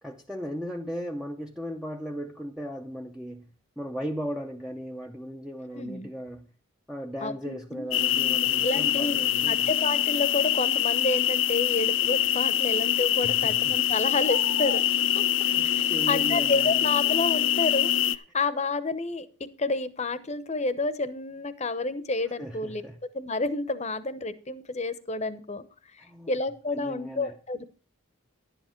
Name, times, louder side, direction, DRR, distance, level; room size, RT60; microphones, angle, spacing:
voice 1, 0.0-6.5 6.9-9.7 13.2-13.8 15.4-16.9 22.4-23.0 26.0-26.3 26.7-27.4, equal, 5° right, 0.6 m, -37 dB
voice 2, 5.7-6.1 7.2-7.8 8.6-9.2 9.5-14.8 15.1-15.2 15.6-19.3 19.6-22.8 23.1-25.6 25.9-26.0 26.3-27.7, left 3 dB, 30° left, 0.8 m, -30 dB
sound 1, 7.9-18.1, left 11 dB, 60° left, 0.6 m, -24 dB
11.5 x 9.9 x 4.5 m
head